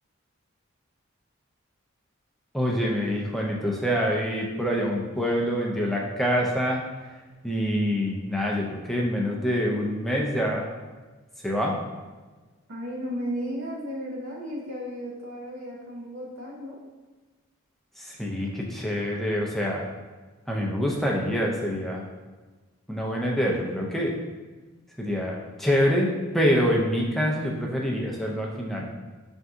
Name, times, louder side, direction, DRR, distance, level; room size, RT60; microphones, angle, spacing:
voice 1, 2.5-7.2 7.4-10.7 11.4-11.8 18.0-19.8 20.5-22.0 22.9-24.2 25.0-28.9, equal, ahead, -2 dB, 0.4 m, -26 dB
voice 2, 12.7-16.8, equal, 70° right, -4 dB, 0.7 m, -34 dB
4.4 x 2.6 x 3.5 m, 1.3 s
head